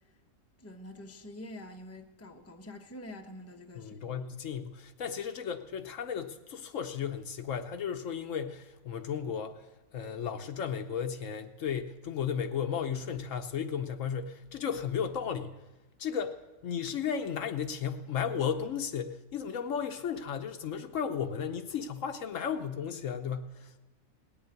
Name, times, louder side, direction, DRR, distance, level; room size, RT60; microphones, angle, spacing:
voice 1, 0.6-4.1, left 1 dB, 15° left, 0.8 m, -46 dB
voice 2, 3.7-9.6 9.9-15.5 16.0-16.4 16.6-23.8, left 7 dB, 70° left, 1.1 m, -34 dB
18.5 x 7.2 x 9.5 m
omnidirectional pair, 1.4 m